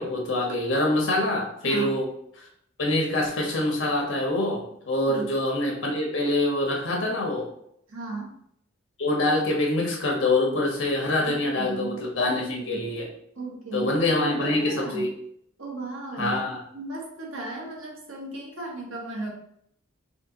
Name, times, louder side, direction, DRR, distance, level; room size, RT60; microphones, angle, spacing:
voice 1, 0.0-2.1 2.4-2.5 2.8-7.5 9.0-13.1 13.7-15.1 16.1-16.6, left 2 dB, 70° left, -1 dB, 1.3 m, -25 dB
voice 2, 1.6-2.0 5.1-5.4 7.9-8.4 11.2-12.0 12.6-12.8 13.3-15.1 15.6-16.5 16.7-19.3, right 3 dB, 80° right, -2 dB, 1.4 m, -35 dB
4.3 x 2.5 x 4.0 m, 0.71 s
head